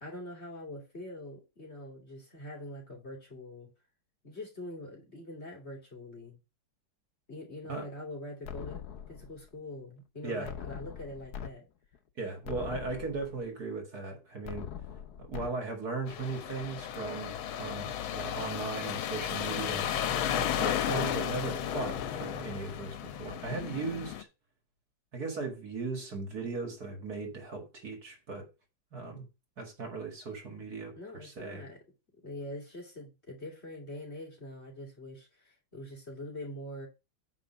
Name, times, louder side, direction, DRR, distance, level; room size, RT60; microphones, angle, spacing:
voice 1, 0.0-3.7 4.2-6.4 7.3-11.7 30.9-31.8 32.2-36.9, left 1 dB, 30° left, 2.9 m, -44 dB
sound 1, 8.4-9.5 10.4-11.5 11.9-12.0 12.4-13.5 14.4-15.5, left 8 dB, 55° left, 1.3 m, -42 dB
voice 2, 12.2-14.7 15.2-19.9 20.3-24.3 25.1-28.5 28.9-29.3 29.6-31.7, right 3 dB, 50° right, 2.3 m, -37 dB
sound 2, 16.1-24.2, left 10 dB, 85° left, 1.6 m, -34 dB
9.5 x 4.1 x 6.1 m
omnidirectional pair, 2.2 m